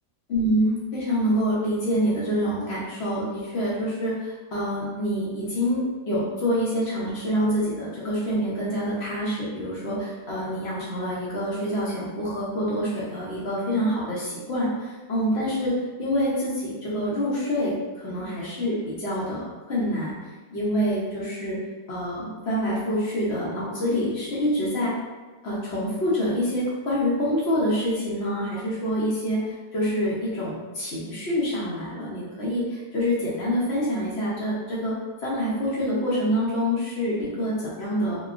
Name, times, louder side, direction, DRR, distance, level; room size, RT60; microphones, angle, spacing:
voice 1, 0.3-20.1 20.5-21.6 21.9-24.9 25.4-34.9 35.2-38.2, equal, 60° left, -7 dB, 0.7 m, -26 dB
2.9 x 2.2 x 2.4 m, 1.3 s
omnidirectional pair, 1.8 m